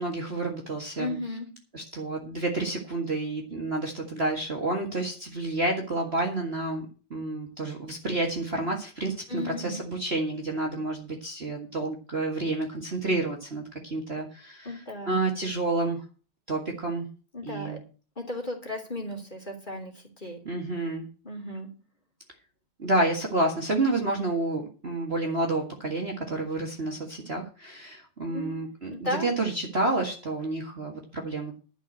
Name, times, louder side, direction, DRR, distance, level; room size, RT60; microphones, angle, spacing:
voice 1, 0.0-1.1 1.7-6.9 7.1-14.7 15.1-16.0 16.5-17.1 17.4-17.8 20.5-21.0 22.8-31.6, right 2 dB, 30° right, 0 dB, 2.0 m, -29 dB
voice 2, 1.0-1.5 9.3-9.8 14.6-15.2 17.3-17.8 18.2-20.4 21.2-21.7 28.3-28.6 28.9-29.3, left 1 dB, 20° left, 1 dB, 3.1 m, -35 dB
12.0 x 6.2 x 7.8 m, 0.36 s
omnidirectional pair, 2.3 m